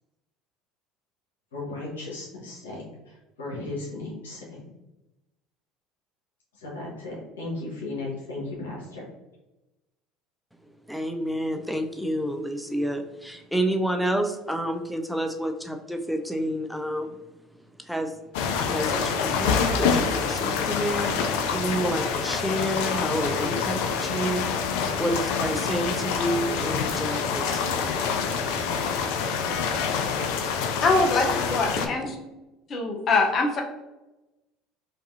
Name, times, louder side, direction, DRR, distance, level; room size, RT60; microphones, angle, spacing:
voice 1, 1.5-4.6 6.6-9.1, left 2 dB, 90° left, -4 dB, 1.3 m, -36 dB
voice 2, 10.9-17.2 17.8-18.2 18.5-27.8, right 1 dB, ahead, 4 dB, 0.5 m, -29 dB
sound 1, 18.3-31.9, left 6 dB, 75° left, 0.4 m, -26 dB
voice 3, 30.6-32.2 32.7-33.6, left 3 dB, 45° left, 2 dB, 0.7 m, -23 dB
5.3 x 2.7 x 2.6 m, 1.0 s
hypercardioid pair, 75°, 0 cm